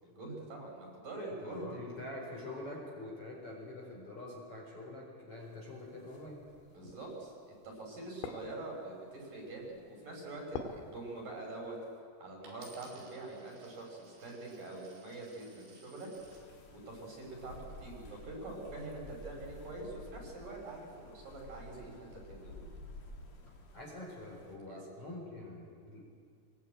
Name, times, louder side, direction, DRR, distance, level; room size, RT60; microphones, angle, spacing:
voice 1, 0.0-1.8 6.7-7.3 7.6-11.8 12.2-16.1 16.7-22.7 24.7-24.8, right 2 dB, 45° right, -1 dB, 6.5 m, -45 dB
voice 2, 1.4-6.4 23.7-26.0, left 1 dB, 30° left, -2 dB, 5.0 m, -45 dB
sound 1, 5.4-12.0, left 6 dB, 90° left, 4.4 m, -50 dB
Coin (dropping), 12.4-16.5 17.2-17.6, right 3 dB, 80° right, 7.3 m, -59 dB
sound 2, 16.2-24.6, left 1 dB, 65° left, 5.3 m, -52 dB
25.0 x 21.0 x 9.0 m, 2.3 s
omnidirectional pair, 5.7 m